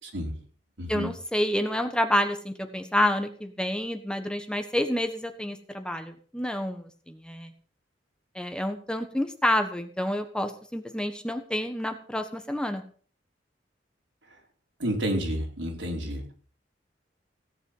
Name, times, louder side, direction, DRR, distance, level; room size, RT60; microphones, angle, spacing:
voice 1, 0.0-0.3 0.8-1.1 14.8-16.3, equal, 85° right, 0 dB, 4.5 m, -30 dB
voice 2, 0.9-7.5 8.3-12.8, left 1 dB, 5° left, 6 dB, 1.4 m, -28 dB
16.5 x 9.2 x 5.6 m, 0.43 s
head